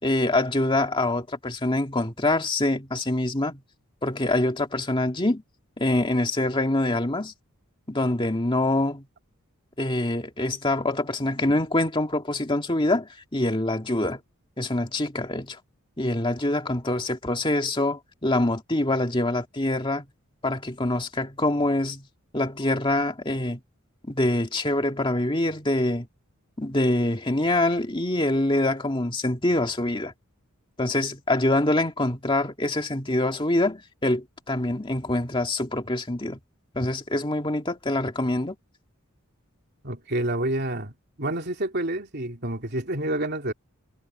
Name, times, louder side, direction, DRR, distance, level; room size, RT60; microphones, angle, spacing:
voice 1, 0.0-3.6 4.0-5.4 5.8-7.3 7.9-9.1 9.8-14.2 14.6-15.6 16.0-20.0 20.4-22.0 22.3-23.6 24.1-26.1 26.6-30.1 30.8-36.4 36.7-38.6, left 1 dB, 25° left, 2.2 m, -25 dB
voice 2, 39.8-40.9 41.2-43.5, right 1 dB, 50° right, 3.3 m, -28 dB
head